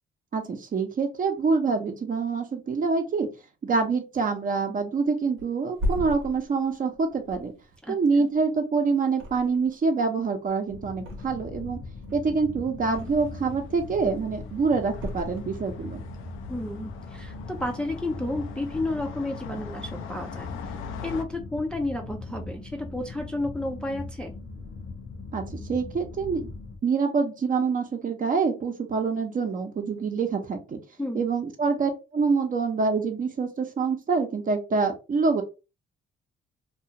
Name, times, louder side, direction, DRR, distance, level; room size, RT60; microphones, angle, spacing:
voice 1, 0.3-3.3 3.6-7.5 7.9-11.8 12.1-16.0 25.3-26.5 26.8-30.8 31.1-35.4, right 4 dB, 45° right, 5 dB, 0.7 m, -26 dB
Thump thud, 5.4-8.7 9.1-9.9 10.2-11.6 12.0-13.5 13.9-14.4 14.9-15.9 16.3-16.5, left 1 dB, 90° right, 1.0 m, -36 dB
voice 2, 7.8-8.3 16.5-24.3 31.0-31.2, left 2 dB, 5° left, 2 dB, 0.4 m, -32 dB
sound 1, 10.7-26.8, left 3 dB, 50° left, 0.7 m, -40 dB
Crossing car paved road, 13.0-21.2, left 6 dB, 85° left, 0.5 m, -43 dB
2.4 x 2.4 x 2.8 m, 0.29 s
cardioid pair, 90°, 20 cm